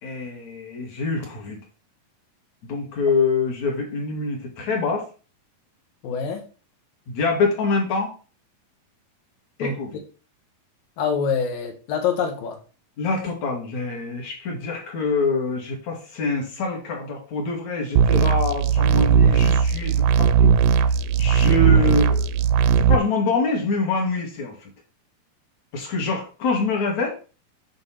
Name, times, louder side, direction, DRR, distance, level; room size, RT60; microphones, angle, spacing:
voice 1, 0.0-1.6 2.6-5.1 7.1-8.1 9.6-9.9 13.0-20.6 21.2-22.3 22.8-24.5 25.7-27.1, left 3 dB, 55° left, 0 dB, 3.1 m, -25 dB
voice 2, 6.0-6.4 9.6-9.8 11.0-12.6 22.6-22.7, left 6 dB, 75° left, 4 dB, 3.2 m, -25 dB
sound 1, 18.0-23.0, right 7 dB, 80° right, 2.0 m, -18 dB
9.0 x 3.6 x 5.8 m, 0.36 s
omnidirectional pair, 4.1 m